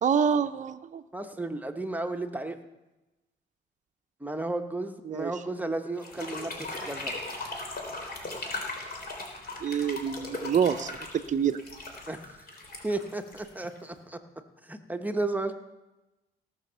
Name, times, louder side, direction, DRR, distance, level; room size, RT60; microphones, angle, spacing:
voice 1, 0.0-1.0 5.1-5.3 9.6-11.6, right 7 dB, 40° right, 8 dB, 0.6 m, -27 dB
voice 2, 1.1-2.6 4.2-7.2 12.1-12.2 12.8-14.2 14.6-15.5, right 2 dB, 10° right, 6 dB, 1.0 m, -33 dB
sound 1, 6.0-14.0, left 2 dB, 50° left, 3.6 m, -38 dB
17.5 x 6.3 x 6.8 m, 1.0 s
cardioid pair, 90°, 20 cm